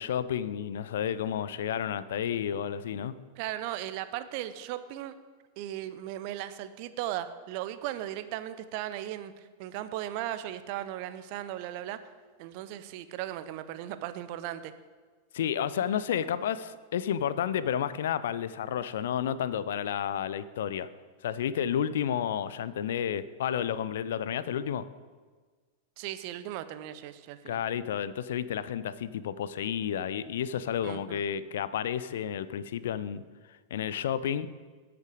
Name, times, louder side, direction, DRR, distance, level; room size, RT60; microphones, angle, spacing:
voice 1, 0.0-3.2 15.3-20.9 21.2-24.8 27.5-33.2 33.7-34.5, left 9 dB, 60° left, 15 dB, 0.4 m, -31 dB
voice 2, 3.4-5.1 5.6-12.0 12.4-14.7 26.0-27.6 30.8-31.2, right 13 dB, 45° right, 12 dB, 0.6 m, -37 dB
13.0 x 5.9 x 5.0 m, 1.4 s
figure-of-eight pair, 90°, 0 cm